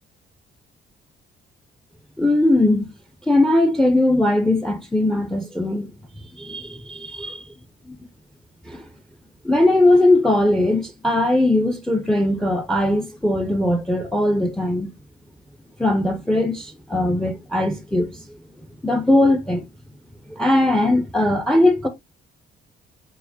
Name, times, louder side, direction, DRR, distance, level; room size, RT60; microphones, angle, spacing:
voice 1, 2.2-2.9 3.3-5.9 6.4-7.3 8.7-8.8 9.4-14.9 15.8-18.2 18.8-19.6 20.3-21.9, left 1 dB, ahead, 0.7 m, -19 dB
4.7 x 4.1 x 2.7 m
cardioid pair, 90°, 20 cm